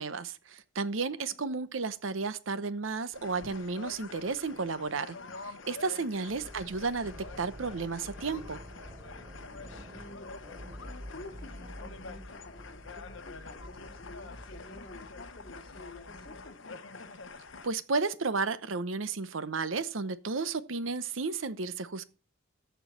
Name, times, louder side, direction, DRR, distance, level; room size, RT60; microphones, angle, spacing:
voice 1, 0.0-5.2 5.4-8.6 17.6-22.0, right 4 dB, 90° right, 0.8 m, -33 dB
sound 1, 3.1-17.7, left 4 dB, 75° left, 1.0 m, -47 dB
voice 2, 5.9-6.4 9.6-10.3 10.8-16.6, left 2 dB, 50° left, 2.3 m, -51 dB
sound 2, 6.3-16.5, equal, 5° right, 4.2 m, -48 dB
14.0 x 4.6 x 6.0 m
head